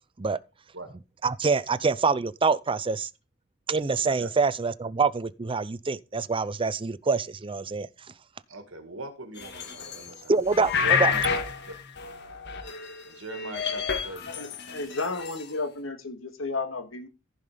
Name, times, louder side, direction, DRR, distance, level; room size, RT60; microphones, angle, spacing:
voice 1, 1.2-3.1 3.7-7.9 10.3-11.1, right 4 dB, 25° right, 0.5 m, -25 dB
voice 2, 8.5-10.4 10.8-11.7 13.1-14.3, right 2 dB, 70° right, 2.1 m, -40 dB
sound 1, 9.4-10.2 10.5-13.0 13.3-15.4, left 7 dB, 60° left, 2.0 m, -29 dB
voice 3, 14.3-17.1, left 3 dB, 75° left, 2.0 m, -33 dB
15.0 x 5.5 x 5.1 m
head